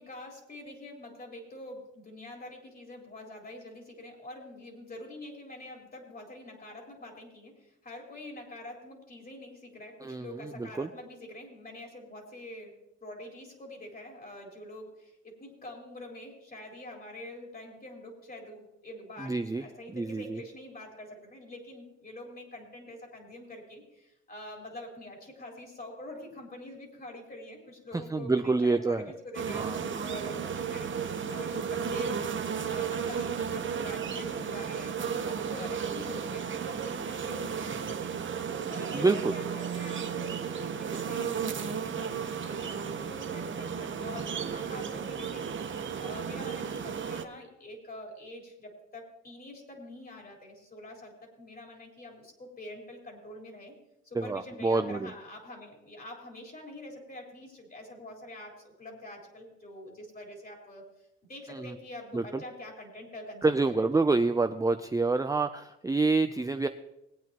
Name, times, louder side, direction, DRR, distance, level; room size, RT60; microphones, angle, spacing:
voice 1, 0.0-12.7 13.0-38.2 38.5-53.7 54.0-60.9 61.3-63.9, left 1 dB, 30° left, 0 dB, 4.3 m, -45 dB
voice 2, 10.0-10.9 19.2-20.4 27.9-29.1 29.5-29.8 38.9-39.3 54.1-55.1 61.5-61.7 62.1-62.4 63.4-66.7, right 3 dB, 10° right, 7 dB, 0.5 m, -27 dB
sound 1, 29.3-47.2, right 7 dB, 40° right, 1.0 m, -34 dB
20.5 x 9.1 x 3.0 m, 0.89 s
cardioid pair, 90°, 30 cm